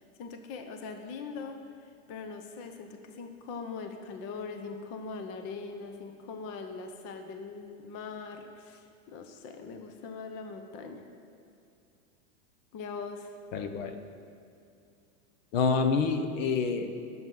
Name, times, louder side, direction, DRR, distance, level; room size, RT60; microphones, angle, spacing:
voice 1, 0.0-11.1 12.7-13.4, left 4 dB, 35° left, 6 dB, 0.8 m, -41 dB
voice 2, 13.5-14.0 15.5-16.9, left 5 dB, 60° left, 7 dB, 1.1 m, -27 dB
18.5 x 7.9 x 3.9 m, 2.5 s
supercardioid pair, 145°, 43 cm